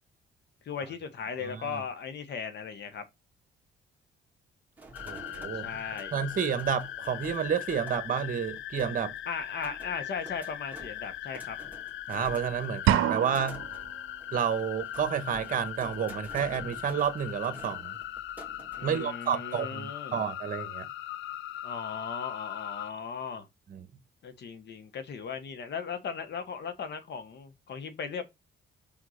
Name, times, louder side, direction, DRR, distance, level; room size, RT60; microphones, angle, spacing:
voice 1, 0.6-3.0 5.5-6.1 9.3-11.6 18.8-20.2 21.6-23.5 24.2-28.3, left 6 dB, 60° left, 1.3 m, -37 dB
sound 1, 4.8-19.0, right 2 dB, 10° right, 1.9 m, -51 dB
sound 2, 4.9-22.9, left 13 dB, 75° left, 0.5 m, -40 dB
voice 2, 5.0-5.8 6.1-9.1 12.1-13.6 14.3-18.0 18.8-20.9 23.7-23.8, right 7 dB, 45° right, 1.1 m, -30 dB
sound 3, 12.9-13.8, right 12 dB, 85° right, 0.6 m, -26 dB
5.6 x 3.9 x 5.0 m
cardioid pair, 90°, 20 cm